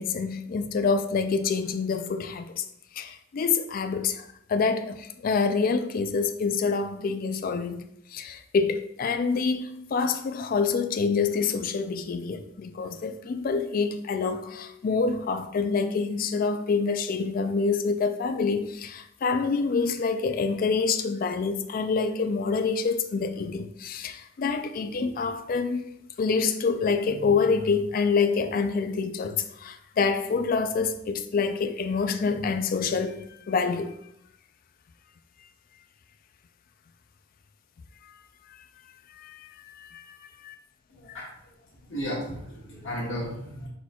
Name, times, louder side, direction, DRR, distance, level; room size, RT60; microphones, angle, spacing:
voice 1, 0.0-2.7 2.9-7.8 8.1-25.8 26.2-34.0 39.2-39.5 39.8-40.2 40.4-40.5 41.1-41.2, left 5 dB, 45° left, 0.3 m, -27 dB
voice 2, 40.9-41.3 41.8-43.7, equal, 80° left, 1.7 m, -34 dB
4.5 x 4.2 x 2.3 m
head